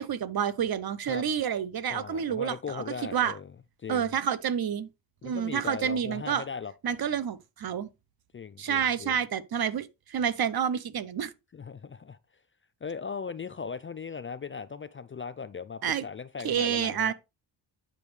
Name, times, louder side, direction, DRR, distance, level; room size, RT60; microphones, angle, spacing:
voice 1, 0.0-2.8 3.1-3.3 3.9-4.9 5.2-6.4 6.8-7.9 8.6-11.3 15.8-16.0 16.4-17.1, right 8 dB, 50° right, 0.8 m, -29 dB
voice 2, 1.9-3.5 3.8-4.1 5.2-6.7 8.3-9.2 11.5-12.2 12.8-17.1, left 5 dB, 25° left, 0.4 m, -38 dB
9.0 x 5.2 x 3.2 m
supercardioid pair, 60°, 48 cm